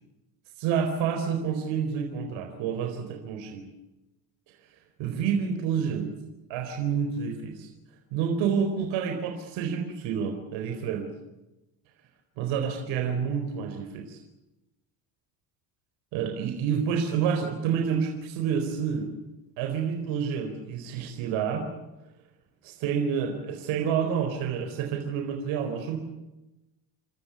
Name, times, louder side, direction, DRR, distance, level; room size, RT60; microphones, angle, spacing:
voice 1, 0.6-3.7 5.0-6.1 6.5-7.7 8.1-11.1 12.4-14.2 16.1-19.1 19.6-21.7 22.6-26.0, right 7 dB, 75° right, 4 dB, 4.4 m, -28 dB
29.0 x 14.0 x 9.3 m, 0.98 s
supercardioid pair, 105°, 47 cm